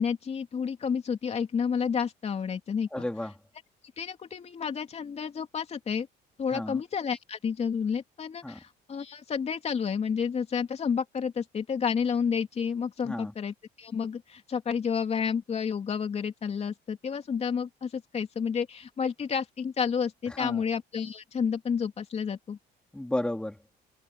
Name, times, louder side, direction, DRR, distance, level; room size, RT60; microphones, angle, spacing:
voice 1, 0.0-2.9 4.0-6.1 6.4-22.6, left 6 dB, 40° left, 3.0 m, -30 dB
voice 2, 2.9-3.3 6.5-6.8 8.4-8.6 13.0-13.3 20.3-20.6 22.9-23.6, left 1 dB, 5° left, 3.0 m, -32 dB
cardioid pair, 110°, 17 cm